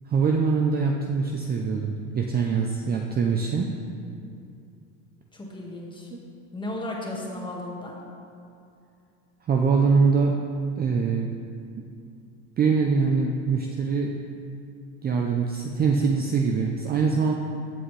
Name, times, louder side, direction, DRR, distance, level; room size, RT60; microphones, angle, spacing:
voice 1, 0.1-3.7 6.1-6.2 9.5-10.4 10.8-11.3 11.8-11.9 12.6-14.1 15.0-17.3, right 5 dB, 25° right, 1 dB, 0.6 m, -23 dB
voice 2, 5.3-6.1 6.5-8.0, left 1 dB, 10° left, -2 dB, 1.6 m, -34 dB
15.0 x 5.8 x 3.3 m, 2.5 s
supercardioid pair, 120°, 37 cm